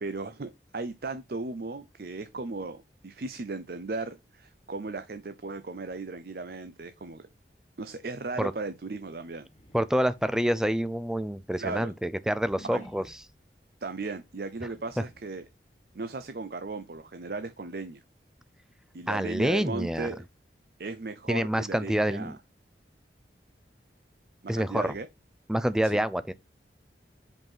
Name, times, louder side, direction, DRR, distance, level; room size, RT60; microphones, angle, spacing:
voice 1, 0.0-2.8 3.0-7.2 7.8-9.5 11.5-11.9 12.7-12.8 13.8-15.4 15.9-18.0 18.9-20.2 20.8-22.4 24.4-25.1 25.8-26.0, right 3 dB, 60° right, 0.6 m, -36 dB
sound 1, 9.4-10.4 11.0-13.4 14.4-15.4, left 1 dB, 35° left, 1.4 m, -53 dB
voice 2, 9.7-13.2 19.1-20.1 21.3-22.4 24.5-24.9 25.5-26.3, equal, 5° right, 0.4 m, -27 dB
5.3 x 4.6 x 5.6 m
head